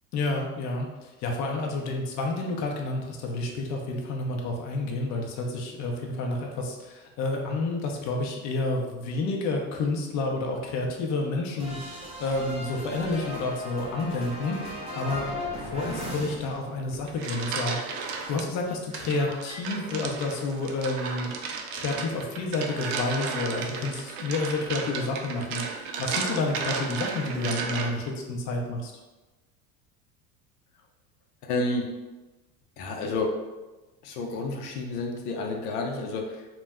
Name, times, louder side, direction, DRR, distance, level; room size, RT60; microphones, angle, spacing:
voice 1, 0.1-0.9 1.2-15.3 15.7-21.3 21.7-28.9, left 2 dB, 40° left, 1 dB, 0.5 m, -30 dB
sound 1, 11.6-17.1 17.3-19.7, left 1 dB, 15° right, 0.5 m, -38 dB
sound 2, 16.9-18.4 18.9-28.1, right 5 dB, 65° right, 0.5 m, -34 dB
voice 2, 31.4-31.9 32.8-33.3 34.0-36.5, left 2 dB, 90° left, 2 dB, 0.6 m, -30 dB
2.2 x 2.0 x 3.4 m, 1.1 s
supercardioid pair, 100°, 45 cm